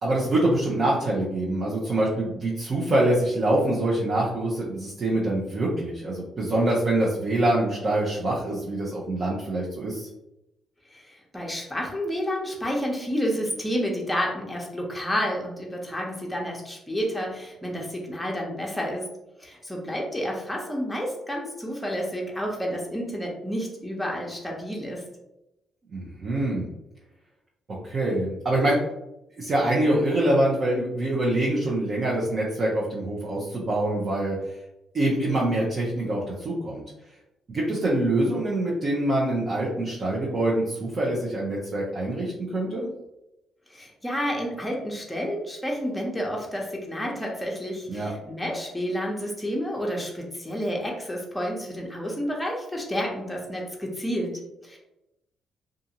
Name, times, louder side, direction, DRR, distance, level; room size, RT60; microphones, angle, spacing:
voice 1, 0.0-10.1 25.9-26.7 27.8-28.8 29.4-34.6 34.9-36.8 37.5-42.9 47.9-48.1, right 1 dB, 45° right, -5 dB, 0.6 m, -25 dB
voice 2, 10.9-19.0 19.4-25.0 43.7-54.8, equal, 5° left, -2 dB, 0.8 m, -30 dB
2.6 x 2.4 x 2.8 m, 0.90 s
cardioid pair, 90°, 0 cm